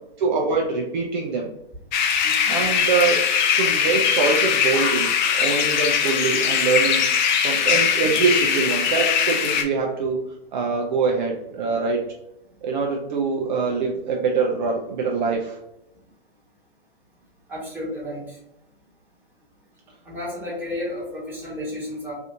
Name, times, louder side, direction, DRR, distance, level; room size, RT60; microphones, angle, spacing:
voice 1, 0.2-1.5 2.5-3.2 3.6-10.2 10.5-12.0 12.6-15.6, right 4 dB, 50° right, 0 dB, 0.6 m, -24 dB
sound 1, 1.9-9.6, left 7 dB, 50° left, 0.5 m, -21 dB
voice 2, 2.2-2.6 17.5-18.4 20.0-22.1, left 1 dB, 5° right, -7 dB, 1.4 m, -32 dB
3.3 x 2.6 x 2.6 m, 0.83 s
figure-of-eight pair, 115°, 30 cm